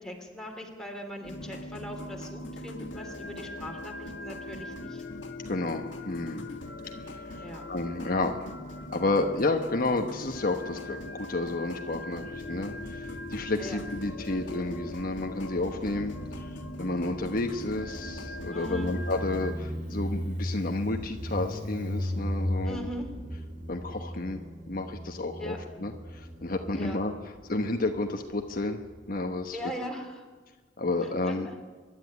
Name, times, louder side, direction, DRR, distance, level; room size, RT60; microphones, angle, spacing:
voice 1, 0.0-5.0 7.4-7.7 13.6-13.8 18.5-19.0 22.6-23.1 25.4-25.6 26.7-27.0 29.5-30.2 31.0-31.5, left 1 dB, 5° left, 1 dB, 3.1 m, -40 dB
sound 1, 1.2-19.5, left 1 dB, 75° left, 2.1 m, -41 dB
voice 2, 5.5-6.5 6.8-8.5 8.9-22.9 23.7-24.4 24.7-27.1 27.4-28.8 29.1-29.6 30.8-31.5, left 2 dB, 50° left, 4 dB, 1.2 m, -31 dB
Motorcycle, 12.2-29.4, equal, 45° right, 3.0 m, -38 dB
24.5 x 12.0 x 9.7 m, 1.4 s
head